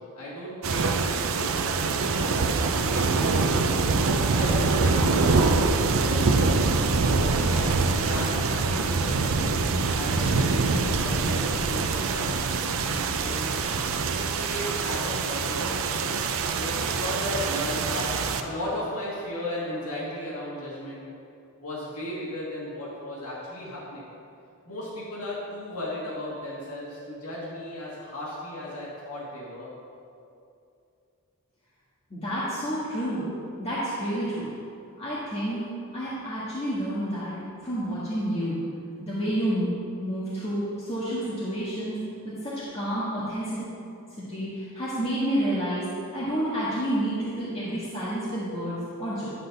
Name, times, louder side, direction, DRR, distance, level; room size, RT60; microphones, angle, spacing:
voice 1, 0.0-3.9 4.1-6.7 7.2-9.5 9.9-13.5 14.0-15.8 16.5-18.1 18.4-21.1 21.6-24.0 24.7-29.7, left 1 dB, 85° left, -6 dB, 1.8 m, -35 dB
sound 1, 0.6-18.4, right 4 dB, 65° right, 0.5 m, -24 dB
voice 2, 32.1-33.2 33.6-34.5 35.0-37.4 37.6-38.6 39.0-39.7 40.0-43.6 44.3-45.8 46.1-49.3, equal, 30° left, -10 dB, 1.5 m, -29 dB
11.0 x 4.0 x 6.5 m, 2.6 s
head